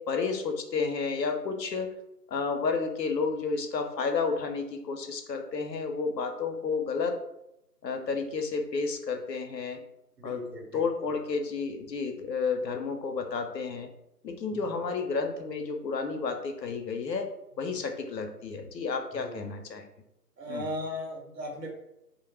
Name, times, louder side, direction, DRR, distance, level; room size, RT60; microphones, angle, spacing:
voice 1, 0.0-1.9 2.3-7.2 7.8-9.8 10.2-10.4 10.7-13.9 14.2-17.3 17.6-19.8 20.5-20.7, left 4 dB, 85° left, 5 dB, 0.6 m, -31 dB
voice 2, 10.2-10.9 14.5-14.8 19.1-19.4 20.4-21.7, equal, 85° right, 0 dB, 0.9 m, -37 dB
2.2 x 2.0 x 3.1 m, 0.83 s
figure-of-eight pair, 160°, 49 cm